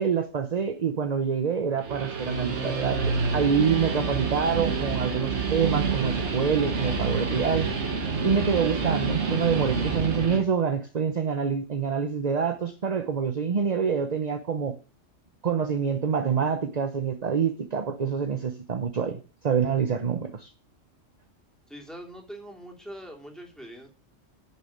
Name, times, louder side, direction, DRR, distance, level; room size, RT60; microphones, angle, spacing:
voice 1, 0.0-7.7 8.2-14.8 15.4-20.5, right 6 dB, 40° right, 0.8 m, -26 dB
Guitar, 1.7-10.4, right 4 dB, 65° right, 1.8 m, -28 dB
voice 2, 21.7-23.9, right 1 dB, ahead, 3.0 m, -42 dB
8.7 x 6.8 x 8.7 m
omnidirectional pair, 1.3 m